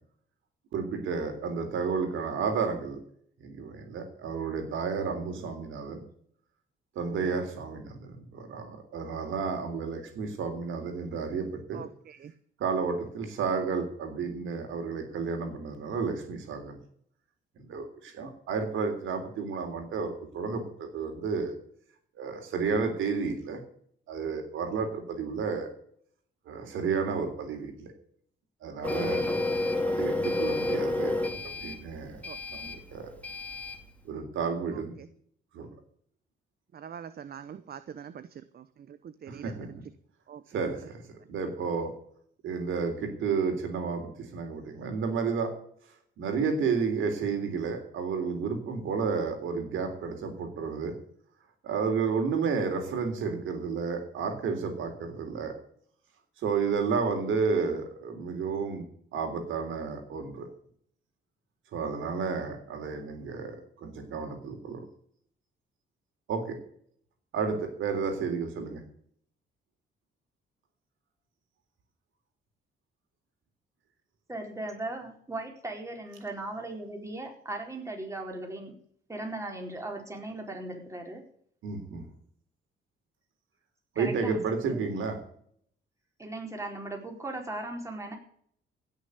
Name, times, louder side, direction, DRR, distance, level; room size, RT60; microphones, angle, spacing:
voice 1, 0.7-3.0 3.4-6.0 7.0-11.8 12.6-16.8 17.6-21.5 22.2-23.6 24.1-25.7 26.5-27.9 28.6-29.3 29.8-31.1 31.4-32.2 32.5-33.1 34.1-34.9 35.5-35.7 40.5-41.0 41.3-41.9 42.4-45.5 46.2-50.9 51.6-55.5 56.4-58.9 59.1-60.5 61.7-64.8 66.3-66.6 67.3-68.8 81.6-82.1 84.0-85.2, right 5 dB, 80° right, 3.7 m, -31 dB
voice 2, 11.7-12.3 32.2-32.4 34.7-35.1 36.7-39.0 39.2-39.5 40.3-40.4, right 8 dB, 50° right, 0.9 m, -44 dB
Printer, 28.8-33.8, left 2 dB, 5° left, 2.5 m, -30 dB
voice 3, 74.3-78.7 79.1-81.2 83.9-84.4 84.6-85.0 86.2-88.2, right 2 dB, 15° right, 4.5 m, -38 dB
16.5 x 6.6 x 8.1 m
cardioid pair, 90°, 20 cm